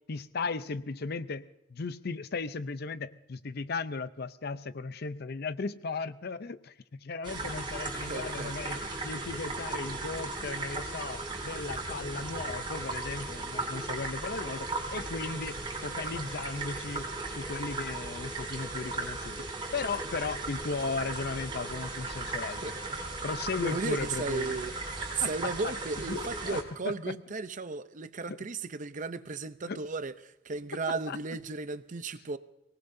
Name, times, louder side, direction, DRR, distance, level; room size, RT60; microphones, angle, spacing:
voice 1, 0.1-19.5 19.7-22.7 23.2-24.6 25.2-25.7 26.0-27.1 28.3-28.4 29.7-29.8 31.1-31.2, left 4 dB, 55° left, 0.6 m, -36 dB
sound 1, 7.2-26.6, right 3 dB, 25° right, 3.2 m, -37 dB
voice 2, 7.9-8.9 22.6-22.8 23.6-24.7 25.1-32.4, right 4 dB, 40° right, 0.6 m, -35 dB
24.5 x 18.5 x 2.7 m
head